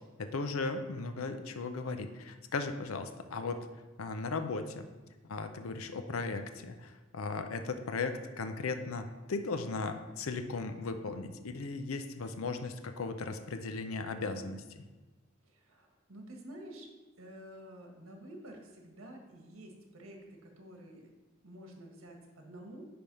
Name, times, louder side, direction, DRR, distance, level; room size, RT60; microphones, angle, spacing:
voice 1, 0.2-3.6 4.0-4.9 5.3-14.8, left 3 dB, 85° left, 8 dB, 0.6 m, -37 dB
voice 2, 15.4-16.9 17.2-21.1 21.4-22.9, right 1 dB, 85° right, 2 dB, 1.5 m, -50 dB
10.0 x 3.5 x 5.3 m, 1.3 s
head